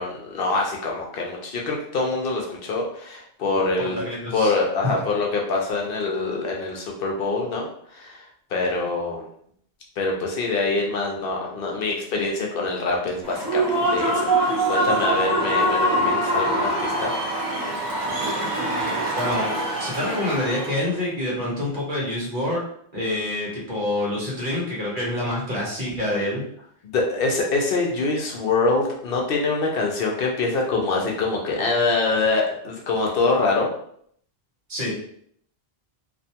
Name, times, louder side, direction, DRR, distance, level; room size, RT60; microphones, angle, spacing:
voice 1, 0.0-4.0 4.3-9.2 10.0-13.6 13.9-17.1 26.8-33.7, left 3 dB, 65° left, -1 dB, 0.7 m, -25 dB
voice 2, 3.8-4.5 18.6-19.5 19.8-22.6 22.9-26.5 34.7-35.0, left 1 dB, 55° right, -4 dB, 1.0 m, -27 dB
Human voice / Cheering / Applause, 13.2-20.9, right 1 dB, 25° right, 0.6 m, -24 dB
2.4 x 2.2 x 2.7 m, 0.65 s
omnidirectional pair, 1.1 m